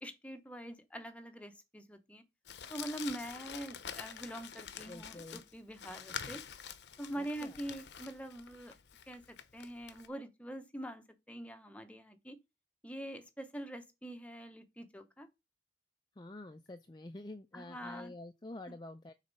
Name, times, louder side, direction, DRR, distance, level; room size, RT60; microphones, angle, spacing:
voice 1, 0.0-2.2 2.7-6.4 7.0-8.7 9.1-12.4 12.8-15.3 17.5-18.1 18.7-18.8, right 1 dB, 10° left, 0.9 m, -44 dB
Crumpling crinkling, 2.5-10.1, left 8 dB, 75° left, 0.8 m, -47 dB
voice 2, 4.9-5.4 7.2-7.6 16.2-19.1, left 2 dB, 25° left, 0.4 m, -48 dB
6.6 x 4.1 x 5.4 m
head